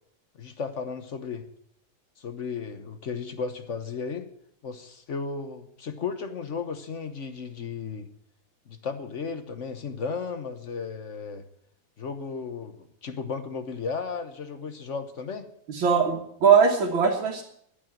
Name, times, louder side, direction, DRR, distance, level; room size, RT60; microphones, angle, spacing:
voice 1, 0.4-1.5 2.2-4.3 4.6-8.1 8.7-11.4 12.0-12.7 13.0-15.5, left 5 dB, 45° left, 9 dB, 1.1 m, -34 dB
voice 2, 15.7-17.4, right 6 dB, 90° right, -2 dB, 2.3 m, -21 dB
12.0 x 8.7 x 9.0 m, 0.72 s
omnidirectional pair, 2.1 m